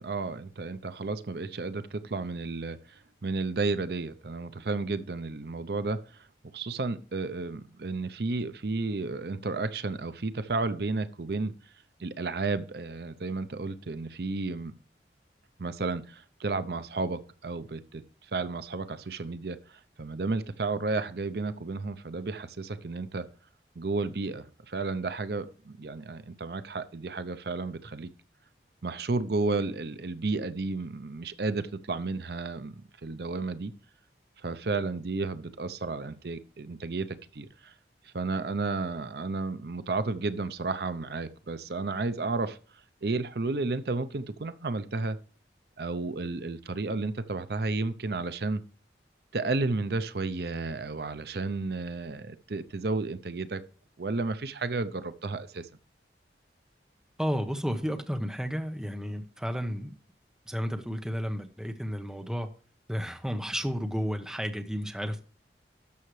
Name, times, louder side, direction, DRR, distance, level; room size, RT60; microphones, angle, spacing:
voice 1, 0.0-6.3 6.5-11.5 12.0-14.7 15.6-23.2 23.8-28.1 28.8-33.7 34.4-37.7 38.0-42.6 43.0-45.2 45.8-48.6 49.3-53.6 54.0-55.7, right 3 dB, 60° right, 0.6 m, -32 dB
voice 2, 57.2-59.9 60.5-62.5 62.9-65.2, equal, 5° right, 0.9 m, -32 dB
12.5 x 6.5 x 3.2 m
head